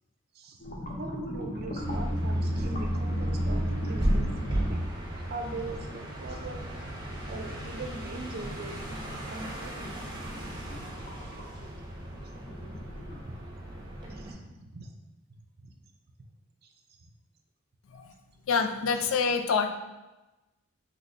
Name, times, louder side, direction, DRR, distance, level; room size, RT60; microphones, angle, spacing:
sound 1, 0.6-4.9 5.5-6.7 7.1-13.2, equal, 35° left, 0.7 m, -40 dB
voice 1, 0.9-4.8 5.3-9.7 13.3-13.4 14.1-14.9 15.6-15.7 16.6-16.7 17.0-17.1 19.0-19.1, right 2 dB, 45° right, 4 dB, 0.5 m, -41 dB
sound 2, 1.8-14.3, right 1 dB, 20° right, 0.8 m, -33 dB
voice 2, 18.5-19.7, left 5 dB, 70° left, 6 dB, 0.4 m, -26 dB
5.9 x 3.1 x 2.6 m, 1.1 s
head